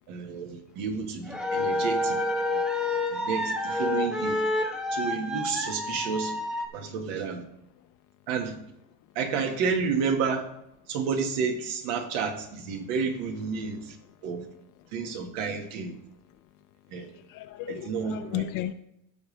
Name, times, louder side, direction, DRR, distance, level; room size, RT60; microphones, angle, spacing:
voice 1, 0.1-2.2 2.5-2.6 3.1-4.4 4.9-6.4 6.7-7.4 8.3-8.6 9.1-10.5 10.9-14.0 14.2-14.5 14.9-15.9 16.9-17.1 17.7-18.5, right 5 dB, 80° right, 4 dB, 1.7 m, -30 dB
sound 1, 1.3-6.7, left 1 dB, ahead, 0.6 m, -28 dB
voice 2, 17.0-18.7, left 13 dB, 50° left, 11 dB, 0.5 m, -35 dB
15.5 x 5.5 x 3.3 m, 0.82 s
cardioid pair, 155°, 45 cm